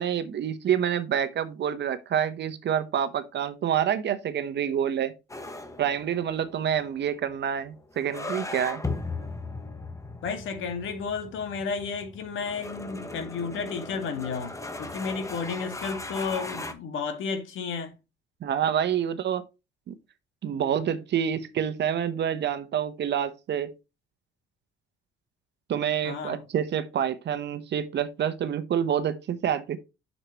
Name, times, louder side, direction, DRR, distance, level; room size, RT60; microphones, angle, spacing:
voice 1, 0.0-5.1 5.8-8.8 18.4-19.4 19.9-20.0 20.4-23.7 25.7-29.8, right 9 dB, 60° right, 1.0 m, -27 dB
sound 1, 5.3-16.7, left 2 dB, 15° left, 1.1 m, -38 dB
voice 2, 10.2-17.9 26.0-26.4, left 5 dB, 80° left, 2.0 m, -32 dB
7.8 x 6.5 x 3.0 m
cardioid pair, 90°, 20 cm